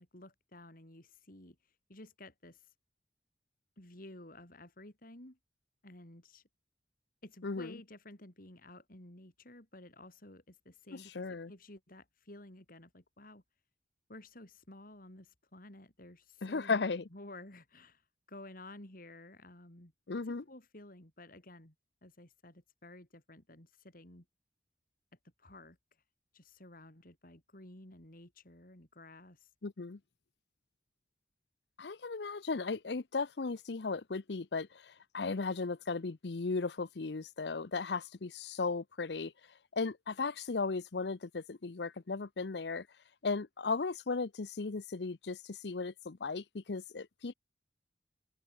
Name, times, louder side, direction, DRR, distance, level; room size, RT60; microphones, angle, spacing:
voice 1, 0.0-1.6 1.9-2.7 3.8-5.4 5.8-6.4 7.2-13.4 14.1-18.0 18.3-21.7 22.0-24.2 25.4-25.8 26.3-29.5, left 1 dB, 55° left, 4.6 m, -53 dB
voice 2, 7.4-7.7 10.9-11.5 16.4-17.1 20.1-20.4 29.6-30.0 31.8-39.3 39.7-42.9 43.2-47.3, left 4 dB, 70° left, 0.7 m, -36 dB
head